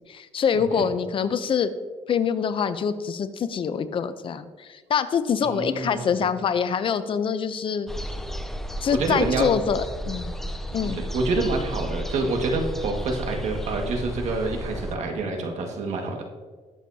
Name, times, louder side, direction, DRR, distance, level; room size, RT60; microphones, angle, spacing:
voice 1, 0.1-1.7 2.1-7.9 8.8-10.3 10.7-11.0, left 7 dB, 45° left, 12 dB, 0.6 m, -25 dB
voice 2, 5.4-6.1 9.0-9.5 10.8-16.2, right 3 dB, 70° right, 2 dB, 1.8 m, -27 dB
sound 1, 7.9-15.0, equal, 5° left, 0.7 m, -33 dB
20.0 x 7.2 x 2.8 m, 1.4 s
cardioid pair, 120°, 12 cm